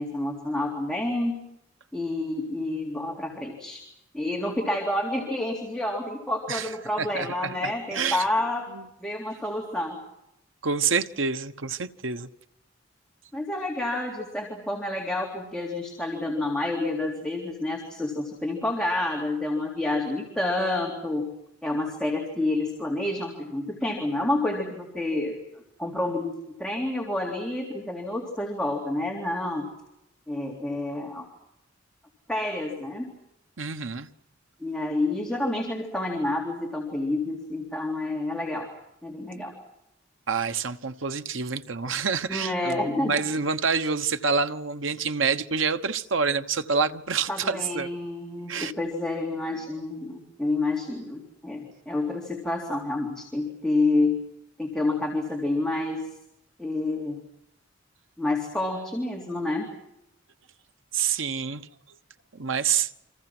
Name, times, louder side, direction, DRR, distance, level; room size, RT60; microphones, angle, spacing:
voice 1, 0.0-1.4 1.9-3.8 4.1-8.7 9.0-10.0 13.3-21.3 21.6-25.4 25.8-26.3 26.6-29.7 30.3-31.3 32.3-33.1 34.6-38.7 39.0-39.5 42.3-43.1 47.3-54.2 54.6-56.0 56.6-57.2 58.2-59.7, left 2 dB, 5° left, 3.6 m, -29 dB
voice 2, 7.0-8.2 8.7-8.9 10.6-12.3 33.6-34.1 40.3-47.9 48.5-48.7 49.5-49.7 60.9-61.7 62.3-62.9, right 5 dB, 75° right, 1.1 m, -27 dB
29.0 x 26.0 x 6.1 m
head